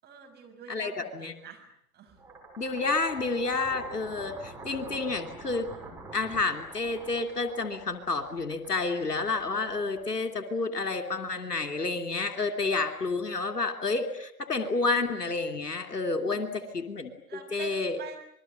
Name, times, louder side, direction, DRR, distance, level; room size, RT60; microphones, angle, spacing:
voice 1, 0.0-1.6 1.9-2.2 16.2-16.7 17.3-18.2, right 7 dB, 20° right, 2 dB, 6.3 m, -46 dB
voice 2, 0.7-1.3 2.6-5.7 6.1-17.1 17.5-18.0, left 3 dB, 80° left, 7 dB, 3.0 m, -30 dB
sound 1, 2.1-10.4, right 3 dB, 5° right, 5.7 m, -46 dB
27.0 x 22.0 x 9.0 m, 0.73 s
figure-of-eight pair, 105°, 47 cm